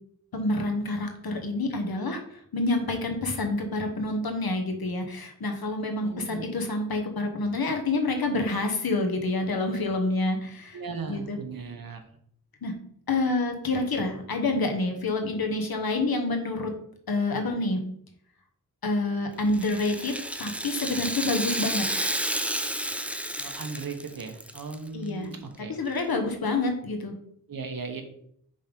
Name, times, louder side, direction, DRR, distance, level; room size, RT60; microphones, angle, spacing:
voice 1, 0.3-10.8 11.1-11.4 12.6-12.7 13.1-16.7 17.1-17.8 18.8-21.9 24.9-25.3 25.8-27.1, left 2 dB, 85° left, 4 dB, 1.1 m, -28 dB
voice 2, 6.0-6.4 10.7-12.0 23.4-25.8 26.0-26.2 27.5-28.0, right 4 dB, 75° right, 5 dB, 1.0 m, -37 dB
Rattle (instrument), 19.5-24.7 25.1-25.2 26.0-26.1, right 1 dB, 5° right, 0.4 m, -31 dB
5.4 x 3.5 x 5.1 m, 0.67 s
wide cardioid pair, 80°, 35 cm